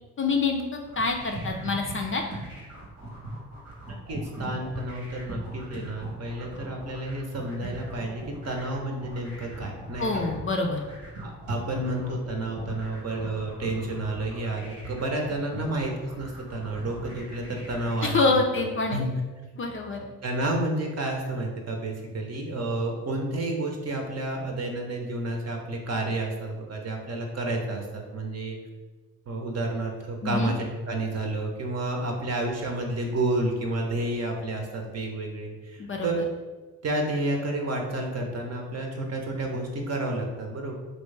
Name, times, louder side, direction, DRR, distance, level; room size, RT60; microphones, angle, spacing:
voice 1, 0.2-2.2 10.0-10.8 18.0-19.1 19.6-20.0 30.2-30.5 35.8-36.2, left 3 dB, 35° left, 2 dB, 0.5 m, -26 dB
sound 1, 0.8-18.2, right 1 dB, 85° right, 1.4 m, -40 dB
voice 2, 4.1-10.2 11.2-18.4 18.9-19.2 20.2-28.6 29.3-36.2 36.8-40.7, right 2 dB, 40° right, 2 dB, 0.8 m, -30 dB
3.1 x 2.7 x 3.2 m, 1.3 s
hypercardioid pair, 45°, 39 cm